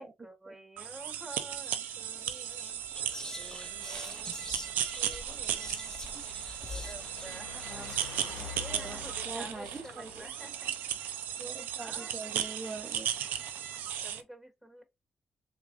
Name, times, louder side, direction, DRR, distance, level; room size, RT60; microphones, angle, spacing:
voice 1, 0.0-2.8 3.4-8.1 8.4-11.0 11.8-12.1 14.0-14.8, right 1 dB, 5° right, 2.1 m, -50 dB
sound 1, 0.8-14.2, right 10 dB, 85° right, 0.5 m, -36 dB
sound 2, 1.7-13.4, left 8 dB, 90° left, 0.6 m, -51 dB
Whispering, 1.7-1.9 2.2-10.3, left 3 dB, 20° left, 0.5 m, -47 dB
voice 2, 8.3-10.3 11.4-13.1, right 3 dB, 35° right, 0.6 m, -43 dB
3.6 x 3.3 x 2.4 m
supercardioid pair, 55°, 3 cm